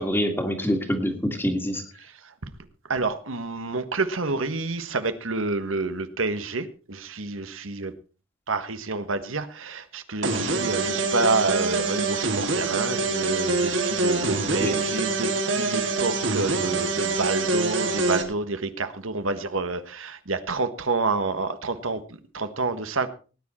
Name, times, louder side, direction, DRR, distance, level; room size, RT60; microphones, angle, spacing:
voice 1, 0.0-1.8 14.5-14.7, equal, 10° left, 6 dB, 1.9 m, -26 dB
voice 2, 2.0-2.3 2.9-7.9 8.5-22.0 22.3-23.1, right 3 dB, 90° right, 10 dB, 1.4 m, -28 dB
sound 1, 10.2-18.2, right 3 dB, 70° right, 2.6 m, -25 dB
18.5 x 9.9 x 4.3 m, 0.36 s
head